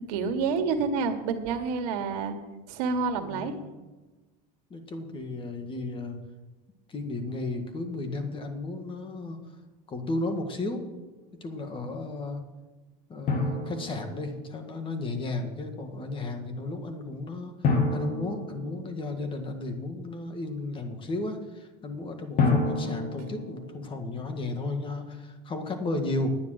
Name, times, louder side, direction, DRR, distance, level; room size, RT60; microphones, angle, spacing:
voice 1, 0.0-2.3 2.7-3.5, right 5 dB, 75° right, 6 dB, 1.7 m, -28 dB
voice 2, 3.1-3.6 4.7-6.2 6.9-9.4 9.9-10.8 11.4-12.4 13.1-26.4, left 2 dB, 25° left, 6 dB, 1.9 m, -34 dB
Drum, 13.3-14.8 17.6-19.4 22.4-24.0, left 3 dB, 40° left, 2.2 m, -29 dB
10.5 x 9.5 x 6.5 m, 1.2 s
supercardioid pair, 130°, 21 cm